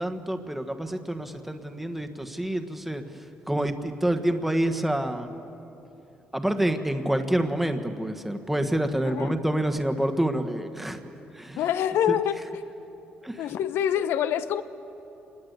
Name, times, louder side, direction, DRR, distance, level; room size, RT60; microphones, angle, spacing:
voice 1, 0.0-5.3 6.3-11.0 11.3-11.6 12.1-12.2 13.2-13.4, right 1 dB, 5° right, 6 dB, 1.4 m, -27 dB
voice 2, 9.0-9.4 11.6-12.6 13.4-14.6, left 9 dB, 80° left, 13 dB, 0.9 m, -26 dB
27.0 x 21.0 x 8.1 m, 3.0 s
cardioid pair, 135°, 4 cm